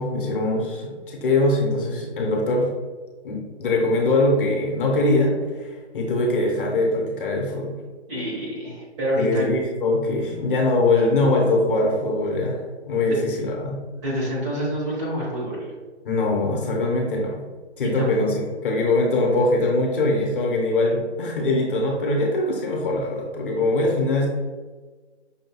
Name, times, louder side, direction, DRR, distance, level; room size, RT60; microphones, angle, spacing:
voice 1, 0.0-2.7 3.2-7.8 9.1-12.6 12.9-13.8 16.0-17.4 17.8-24.3, left 2 dB, 50° left, -1 dB, 0.8 m, -22 dB
voice 2, 8.1-9.5 13.0-13.2 14.0-15.7 17.8-18.1, equal, 30° right, -5 dB, 1.2 m, -27 dB
5.5 x 2.6 x 2.2 m, 1.4 s
figure-of-eight pair, 145°, 34 cm